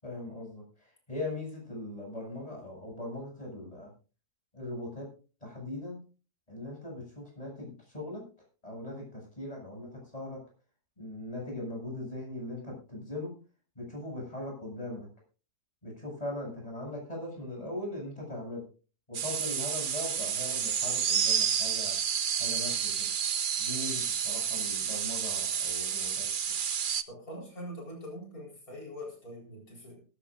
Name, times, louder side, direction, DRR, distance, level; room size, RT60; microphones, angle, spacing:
voice 1, 0.0-3.9 4.5-5.1 5.4-6.0 6.5-8.2 8.6-10.4 11.0-13.3 13.8-15.1 15.8-18.6 19.1-21.9 22.4-23.1 23.6-26.3, left 1 dB, 25° left, 0 dB, 7.5 m, -40 dB
sound 1, 19.1-27.0, right 8 dB, 50° right, 0.6 m, -30 dB
voice 2, 27.1-30.0, equal, 65° left, 0 dB, 4.8 m, -43 dB
18.0 x 14.0 x 2.5 m, 0.35 s
omnidirectional pair, 1.6 m